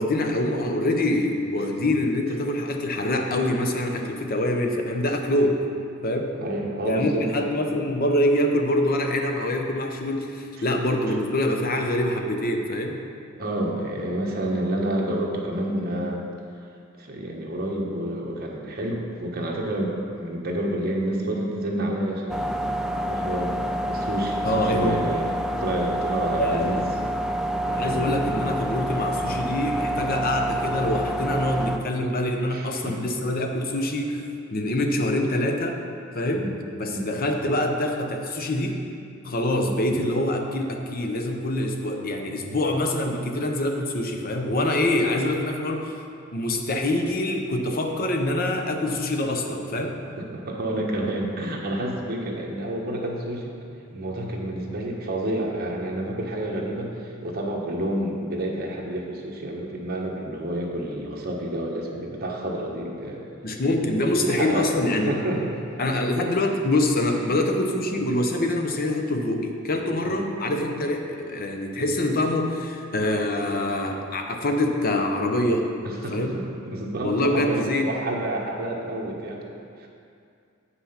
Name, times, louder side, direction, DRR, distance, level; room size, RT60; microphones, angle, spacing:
voice 1, 0.0-5.6 6.0-6.3 6.8-13.0 24.4-25.0 26.4-26.8 27.6-34.2 34.5-35.8 36.1-36.5 36.8-38.8 39.2-46.0 46.3-50.0 63.4-65.1 65.8-75.7 76.1-76.4 77.0-77.9, left 1 dB, 45° left, 3 dB, 0.8 m, -25 dB
voice 2, 6.4-7.3 13.4-16.2 17.0-26.8 27.8-28.1 32.5-33.1 36.3-36.5 36.8-37.1 39.6-39.7 50.2-53.5 53.9-63.3 63.9-64.7 65.1-65.7 67.2-67.3 67.9-68.1 70.1-70.2 75.8-79.4 79.8-79.9, right 1 dB, 50° right, -2 dB, 1.2 m, -29 dB
sound 1, 22.3-31.8, right 1 dB, 5° right, 0.4 m, -28 dB
7.8 x 5.8 x 5.8 m, 2.4 s
head